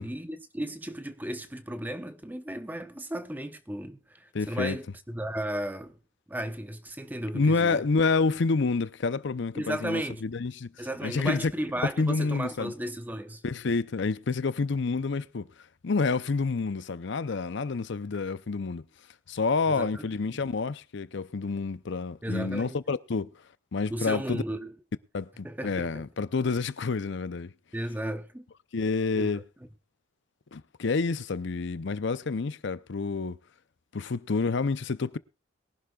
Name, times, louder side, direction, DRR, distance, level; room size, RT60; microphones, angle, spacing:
voice 1, 0.0-6.0 6.3-7.9 9.6-10.2 10.8-13.4 19.7-20.1 20.3-20.5 22.2-22.8 23.9-24.7 25.4-26.1 27.7-28.5 29.1-29.4, right 1 dB, 10° right, 0.8 m, -35 dB
voice 2, 4.3-4.8 7.3-10.7 11.0-11.5 12.0-12.7 13.4-15.5 15.8-18.8 19.3-23.3 23.7-24.4 25.1-27.5 28.7-29.4 30.5-33.4 33.9-35.2, left 4 dB, 60° left, 0.6 m, -28 dB
22.0 x 11.5 x 2.4 m
head